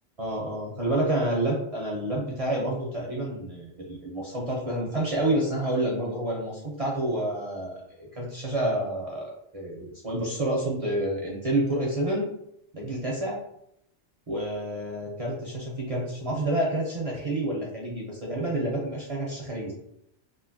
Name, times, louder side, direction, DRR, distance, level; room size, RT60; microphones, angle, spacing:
voice 1, 0.2-12.3 12.7-13.4 14.3-19.7, right 1 dB, 45° right, -3 dB, 0.5 m, -29 dB
3.1 x 2.5 x 2.5 m, 0.74 s
omnidirectional pair, 1.3 m